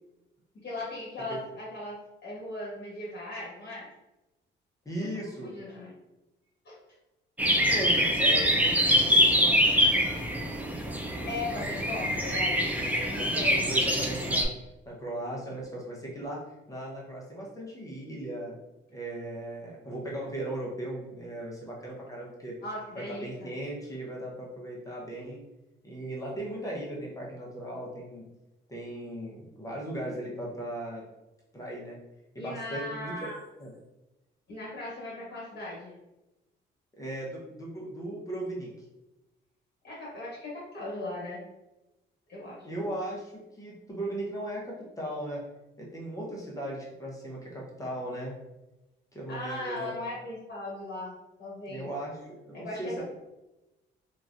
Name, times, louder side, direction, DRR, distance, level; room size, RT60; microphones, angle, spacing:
voice 1, 0.5-3.9 5.4-5.9 6.6-6.8 11.2-12.7 13.1-13.7 22.6-23.5 32.4-33.3 34.5-36.0 39.8-41.4 42.3-42.7 49.3-51.9 52.5-53.0, left 2 dB, 55° left, -5 dB, 1.3 m, -38 dB
voice 2, 4.8-5.5 7.7-9.9 12.7-14.5 14.9-16.4 16.7-18.5 18.9-22.5 22.9-25.4 25.8-28.3 28.7-31.0 31.5-32.0 32.3-33.3 33.6-33.7 37.0-38.7 42.6-45.4 45.8-48.4 49.1-49.9 51.7-53.0, right 1 dB, 15° left, -3 dB, 0.8 m, -37 dB
sound 1, 7.4-14.4, equal, 10° right, 0.4 m, -24 dB
3.0 x 2.4 x 2.5 m, 0.99 s
cardioid pair, 90°, 20 cm